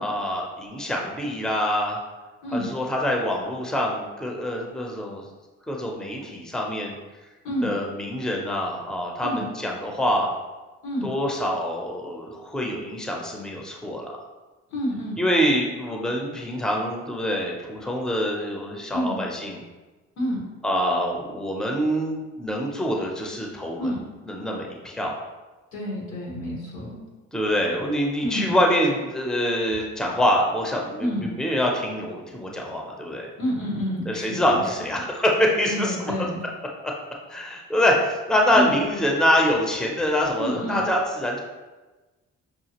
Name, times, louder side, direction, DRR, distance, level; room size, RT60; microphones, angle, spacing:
voice 1, 0.0-2.0 2.5-5.3 5.7-6.9 7.6-10.3 11.0-14.1 15.2-19.6 20.6-25.1 27.3-33.3 34.1-36.3 36.8-36.9 37.3-41.4, equal, ahead, 0 dB, 0.6 m, -25 dB
voice 2, 2.4-2.7 7.4-7.7 9.2-9.5 10.8-11.1 14.7-15.2 18.9-19.2 20.2-20.4 23.8-24.0 25.7-27.0 28.2-28.6 31.0-31.3 33.4-34.6 35.6-36.4 38.5-38.7 40.4-40.8, equal, 85° left, -3 dB, 1.4 m, -28 dB
5.7 x 2.4 x 2.9 m, 1.2 s
cardioid pair, 90°, 30 cm